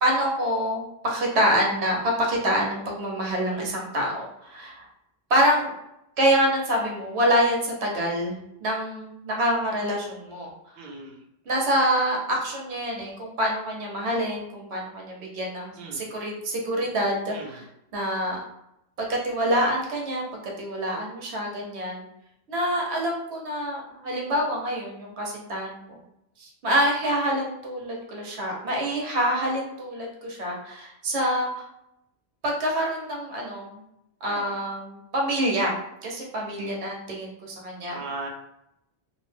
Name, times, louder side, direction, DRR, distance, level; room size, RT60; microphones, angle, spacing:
voice 1, 0.0-4.9 5.3-5.7 6.2-10.5 11.5-17.6 17.9-18.4 19.0-22.0 22.5-25.8 26.4-31.6 32.4-33.8 34.2-38.0, equal, 85° right, -1 dB, 1.0 m, -26 dB
voice 2, 10.8-11.2 15.8-16.0 17.3-17.6 34.2-34.6 37.9-38.3, right 3 dB, 60° right, 0 dB, 0.7 m, -37 dB
2.5 x 2.0 x 3.2 m, 0.82 s
omnidirectional pair, 1.1 m